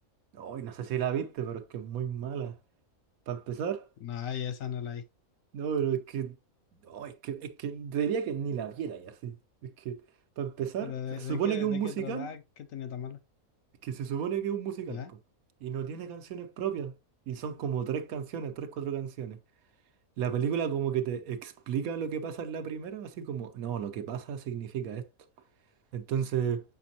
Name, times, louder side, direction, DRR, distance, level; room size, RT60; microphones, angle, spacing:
voice 1, 0.3-2.6 3.3-3.9 5.5-6.3 6.8-9.4 9.6-10.0 10.4-12.3 13.8-15.0 15.6-16.9 17.3-19.4 20.2-25.0 25.9-26.6, right 8 dB, 90° right, 1.2 m, -33 dB
voice 2, 4.0-5.0 10.8-13.2 14.9-15.1, left 8 dB, 70° left, 1.0 m, -37 dB
6.7 x 5.1 x 2.7 m
omnidirectional pair, 1.5 m